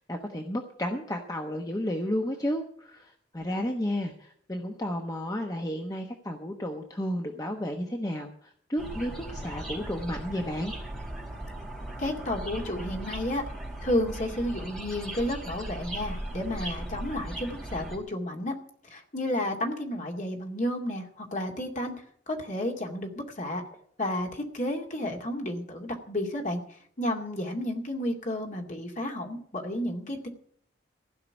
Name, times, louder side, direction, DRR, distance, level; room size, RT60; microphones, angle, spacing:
voice 1, 0.0-10.7, equal, 20° left, 2 dB, 1.1 m, -32 dB
sound 1, 8.8-18.0, right 1 dB, ahead, 4.4 m, -38 dB
voice 2, 12.0-13.4 13.8-18.5 18.9-21.9 22.3-23.6 24.0-30.3, left 1 dB, 40° left, 2 dB, 2.3 m, -31 dB
15.5 x 5.8 x 10.0 m, 0.62 s
head